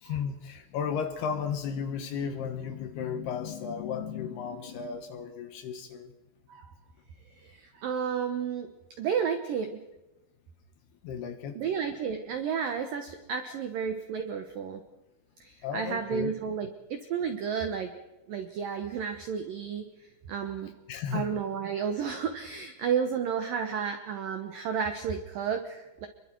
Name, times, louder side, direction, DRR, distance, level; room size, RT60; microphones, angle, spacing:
voice 1, 0.0-6.1 11.0-11.6 15.6-16.3 20.9-21.3, left 7 dB, 70° left, 8 dB, 2.7 m, -34 dB
voice 2, 7.4-8.7 9.0-9.8 11.5-14.8 15.4-17.9 18.3-19.8 20.3-20.7 21.1-26.1, right 7 dB, 75° right, 6 dB, 2.0 m, -32 dB
28.0 x 23.0 x 4.6 m, 1.1 s
omnidirectional pair, 5.6 m